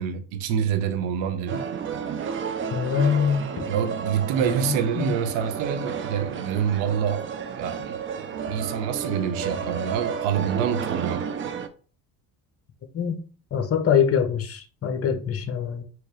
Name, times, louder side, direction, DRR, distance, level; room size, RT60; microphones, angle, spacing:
voice 1, 0.0-1.7 3.7-7.3 7.6-11.2, right 8 dB, 65° right, 0.7 m, -27 dB
sound 1, 1.5-11.7, right 6 dB, 25° right, 0.4 m, -32 dB
voice 2, 2.7-3.7 4.6-5.2 12.9-13.1 13.5-15.8, left 7 dB, 30° left, 0.8 m, -24 dB
4.2 x 2.0 x 3.2 m
hypercardioid pair, 55°, 50 cm